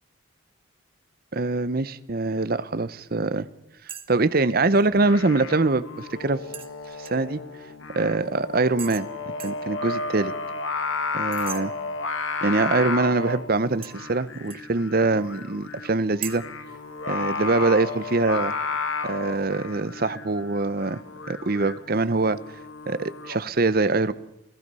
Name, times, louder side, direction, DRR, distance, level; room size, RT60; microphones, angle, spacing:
voice 1, 1.3-3.5 4.1-6.4 7.0-7.4 7.9-9.1 9.4-10.3 11.1-11.7 12.4-16.4 17.1-18.5 19.0-21.0 21.3-22.4 22.9-24.1, right 3 dB, 45° right, 15 dB, 0.8 m, -23 dB
sound 1, 3.9-4.1 4.4-4.9 6.5-7.4 8.8-9.1 9.4-9.7 11.3-11.6 13.8-14.7 16.2-16.3, right 9 dB, 25° right, 1.2 m, -38 dB
Singing, 4.9-23.4, left 4 dB, 75° left, 1.7 m, -33 dB
28.5 x 17.0 x 5.5 m, 0.87 s
head